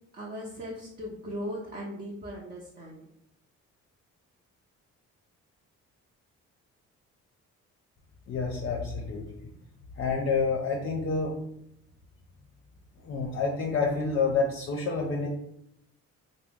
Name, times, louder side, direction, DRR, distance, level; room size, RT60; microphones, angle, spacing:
voice 1, 0.1-3.0, equal, 30° right, -3 dB, 0.6 m, -38 dB
voice 2, 8.3-9.5 10.0-11.4 13.0-15.3, left 4 dB, 45° left, 0 dB, 0.5 m, -28 dB
2.9 x 2.0 x 3.4 m, 0.77 s
cardioid pair, 90°, 30 cm